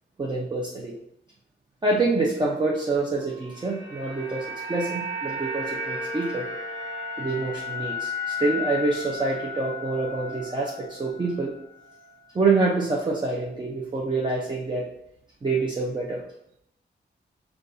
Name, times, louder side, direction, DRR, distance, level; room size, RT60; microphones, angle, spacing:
voice 1, 0.2-0.9 1.8-6.5 7.2-11.6 12.3-14.8 15.4-16.2, right 3 dB, 25° right, -2 dB, 0.5 m, -26 dB
sound 1, 3.3-11.6 11.9-12.0, left 2 dB, 60° right, 1.5 m, -34 dB
5.1 x 2.3 x 3.9 m, 0.78 s
wide cardioid pair, 150°, 19 cm